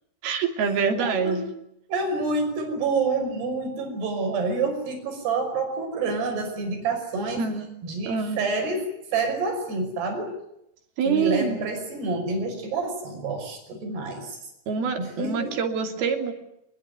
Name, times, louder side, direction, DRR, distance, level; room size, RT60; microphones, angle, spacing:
voice 1, 0.2-1.5 7.4-7.7 8.1-8.5 11.0-11.7 14.7-16.3, right 6 dB, 70° right, 5 dB, 4.8 m, -26 dB
voice 2, 1.0-1.4 1.9-7.5 7.8-8.8 9.1-10.3 11.1-14.4 15.0-15.6, right 3 dB, 90° right, 4 dB, 7.7 m, -28 dB
25.0 x 22.0 x 9.5 m, 0.81 s
omnidirectional pair, 4.6 m